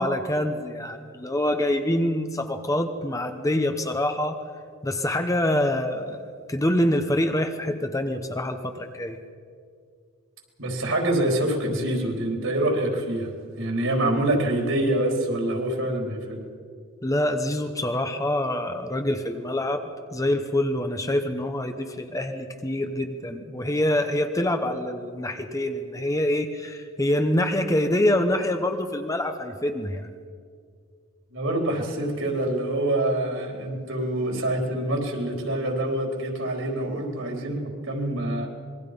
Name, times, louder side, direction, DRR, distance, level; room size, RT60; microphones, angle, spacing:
voice 1, 0.0-4.4 4.8-6.2 6.5-9.2 17.0-30.1, left 1 dB, 15° left, 6 dB, 1.0 m, -25 dB
voice 2, 10.6-13.3 13.6-16.4 31.3-37.6 37.9-38.5, right 1 dB, 65° right, 1 dB, 4.3 m, -26 dB
26.5 x 22.0 x 5.4 m, 2.1 s
head